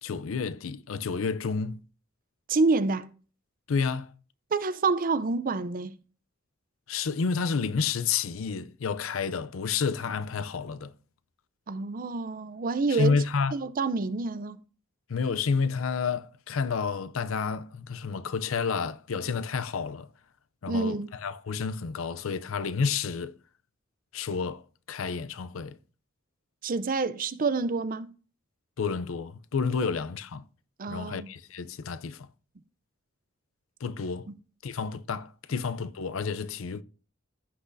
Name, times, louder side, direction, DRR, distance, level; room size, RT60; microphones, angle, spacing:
voice 1, 0.0-1.8 3.7-4.1 6.9-10.9 12.9-13.5 15.1-20.1 20.6-23.3 24.1-24.6 24.9-25.8 28.8-30.4 30.9-32.3 33.8-34.3 34.6-36.8, left 5 dB, 75° left, 0.5 m, -30 dB
voice 2, 2.5-3.1 4.5-5.9 11.7-13.2 13.5-14.6 20.7-21.1 26.6-28.1 30.8-31.3, right 4 dB, 45° right, 0.5 m, -27 dB
15.0 x 6.1 x 2.7 m
head